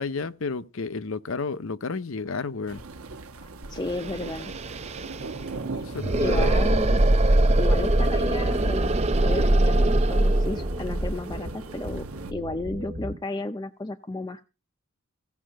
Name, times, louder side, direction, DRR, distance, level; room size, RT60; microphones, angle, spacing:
voice 1, 0.0-2.8 5.8-6.5, left 4 dB, 70° left, 0.7 m, -31 dB
sound 1, 2.7-12.3, right 3 dB, 90° right, 1.2 m, -39 dB
sound 2, 3.6-3.7 3.9-12.7, right 1 dB, 30° right, 0.5 m, -23 dB
voice 2, 3.7-4.5 5.7-5.8 6.2-7.0 7.6-12.1 12.3-14.4, left 2 dB, 20° left, 0.5 m, -33 dB
sound 3, 6.4-13.2, equal, 50° right, 1.0 m, -38 dB
15.5 x 5.7 x 6.4 m
head